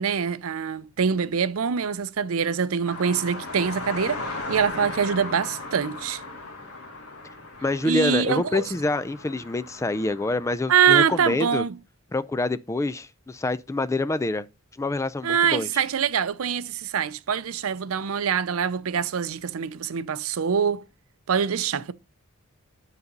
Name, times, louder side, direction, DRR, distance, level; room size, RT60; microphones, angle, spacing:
voice 1, 0.0-6.2 7.8-8.6 10.7-11.8 15.2-20.8 21.3-21.9, right 7 dB, 70° right, 0.5 m, -24 dB
sound 1, 2.9-10.5, left 3 dB, 80° left, 1.8 m, -37 dB
voice 2, 7.6-11.6 12.1-14.5 14.8-15.7, left 2 dB, 15° left, 0.3 m, -26 dB
9.5 x 4.1 x 5.2 m
head